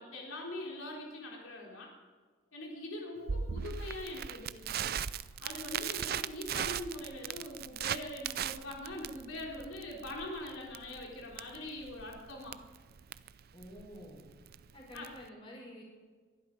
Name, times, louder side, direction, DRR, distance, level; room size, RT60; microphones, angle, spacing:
voice 1, 0.0-1.9 2.5-4.9 5.4-12.6 14.9-15.1, left 1 dB, 85° left, -1 dB, 3.9 m, -43 dB
Crackle, 3.3-15.3, right 8 dB, 50° right, 0.5 m, -39 dB
voice 2, 13.5-14.2 14.7-15.8, equal, 25° left, -1 dB, 5.1 m, -49 dB
22.5 x 12.0 x 5.3 m, 1.5 s
head